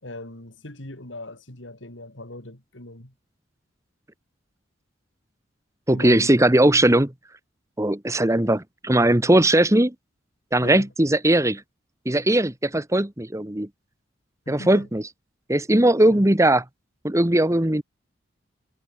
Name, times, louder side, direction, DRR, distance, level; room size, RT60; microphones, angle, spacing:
voice 1, 0.0-3.1 5.9-6.5 10.6-10.9 14.5-14.9 16.1-16.3, left 2 dB, 70° left, 3.9 m, -38 dB
voice 2, 5.9-7.1 7.8-9.9 10.5-11.6 12.0-13.7 14.5-15.0 15.5-16.6 17.0-17.8, right 1 dB, 15° right, 1.2 m, -19 dB
head